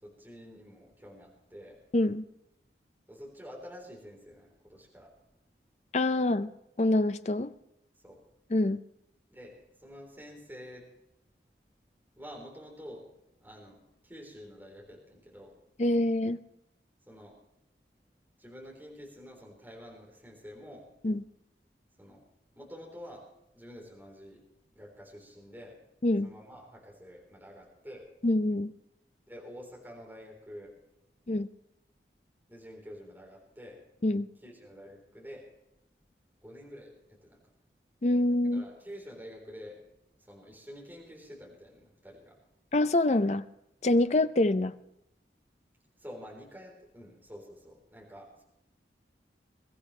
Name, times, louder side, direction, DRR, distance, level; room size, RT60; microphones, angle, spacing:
voice 1, 0.0-1.8 3.1-5.1 8.0-8.2 9.3-10.9 12.2-13.0 13.4-15.6 17.1-17.4 18.4-20.9 22.0-22.2 22.5-23.3 23.5-24.4 24.7-25.8 26.2-28.1 29.3-30.7 32.5-33.8 34.4-35.4 36.4-37.4 38.5-39.9 40.2-42.4 46.0-48.4, equal, 10° right, 3.8 m, -48 dB
voice 2, 1.9-2.2 5.9-6.5 6.8-7.5 8.5-8.8 15.8-16.4 21.0-21.2 26.0-26.3 28.2-28.7 31.3-31.5 34.0-34.3 38.0-38.6 42.7-43.4 43.8-44.7, left 2 dB, 40° left, 0.5 m, -25 dB
22.0 x 14.0 x 3.2 m
head